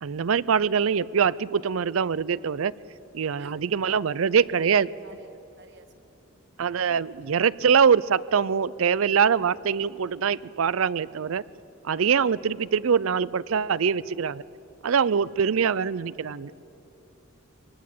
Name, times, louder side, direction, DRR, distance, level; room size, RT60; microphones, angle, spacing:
voice 1, 0.0-2.7 3.1-4.9 6.6-11.4 11.8-14.4 14.8-16.5, right 6 dB, 85° right, 19 dB, 0.5 m, -23 dB
voice 2, 5.0-6.1 6.5-6.7, right 2 dB, 55° right, 7 dB, 1.8 m, -53 dB
23.5 x 19.0 x 8.5 m, 2.8 s
head